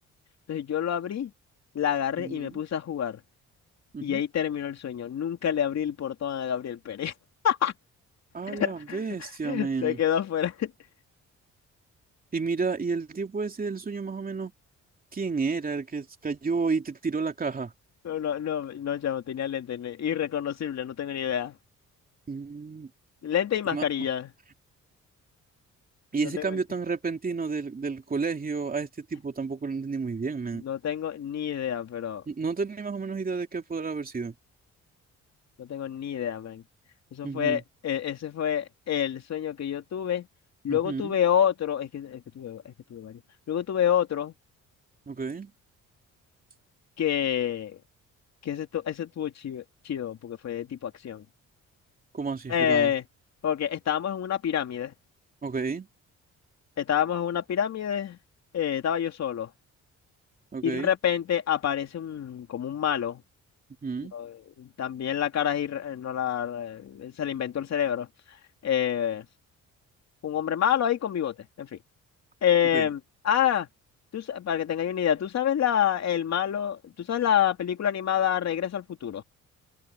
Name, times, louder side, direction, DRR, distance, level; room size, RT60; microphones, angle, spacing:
voice 1, 0.5-1.3 1.7-3.2 4.0-7.1 7.4-7.7 8.5-9.0 9.4-10.7 18.0-21.5 23.2-24.3 26.2-26.6 30.6-32.2 35.6-36.6 37.1-40.3 40.6-43.2 43.5-44.3 47.0-47.8 48.4-51.2 52.5-53.0 53.4-54.9 56.8-58.2 58.5-59.5 60.6-63.2 64.1-68.1 68.6-69.3 70.2-71.8 72.4-73.7 74.1-79.2, left 9 dB, 60° left, 3.0 m, -28 dB
voice 2, 2.2-2.6 3.9-4.2 8.3-10.0 12.3-14.5 15.1-17.7 22.3-22.9 23.7-23.8 26.1-30.6 32.3-34.3 37.2-37.6 40.7-41.2 45.1-45.5 52.1-52.9 55.4-55.9 60.5-60.9 63.8-64.1 72.7-72.9, right 4 dB, 30° right, 3.0 m, -31 dB
cardioid pair, 90°, 30 cm